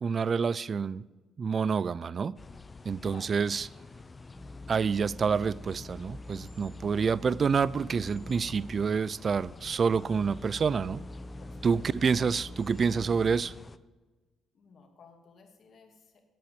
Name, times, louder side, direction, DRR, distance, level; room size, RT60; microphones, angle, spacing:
voice 1, 0.0-1.0 1.4-2.4 2.9-3.7 4.7-11.0 11.6-13.5, right 5 dB, 45° right, 0.3 m, -28 dB
sound 1, 2.4-13.8, left 3 dB, 25° left, 0.5 m, -49 dB
voice 2, 3.0-3.4 11.4-11.8 14.5-16.2, left 4 dB, 55° left, 2.2 m, -55 dB
sound 2, 4.3-9.2 9.8-13.4, left 1 dB, 10° right, 1.6 m, -45 dB
8.8 x 8.4 x 7.7 m
cardioid pair, 90°, 0 cm